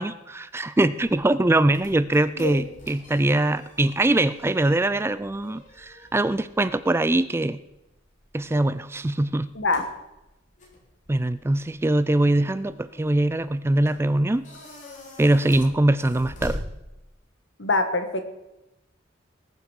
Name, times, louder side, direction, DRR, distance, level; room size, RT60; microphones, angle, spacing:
voice 1, 0.0-7.6 8.3-9.5 11.1-14.4 15.2-16.6, right 1 dB, 15° right, 15 dB, 0.3 m, -22 dB
sound 1, 1.0-17.4, left 1 dB, 40° left, 3.3 m, -44 dB
voice 2, 2.4-2.7 9.5-9.8 17.6-18.2, left 3 dB, 70° left, 8 dB, 1.6 m, -24 dB
19.5 x 6.8 x 6.3 m, 0.95 s
head